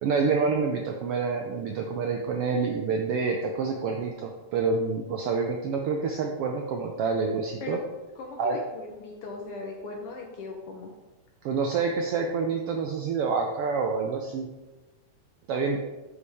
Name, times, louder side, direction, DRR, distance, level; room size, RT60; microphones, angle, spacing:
voice 1, 0.0-7.8 8.4-8.6 11.4-14.5 15.5-15.8, right 5 dB, 75° right, 2 dB, 1.3 m, -27 dB
voice 2, 8.2-10.9, left 3 dB, 65° left, 0 dB, 1.6 m, -38 dB
8.6 x 6.9 x 3.5 m, 1.1 s
omnidirectional pair, 3.3 m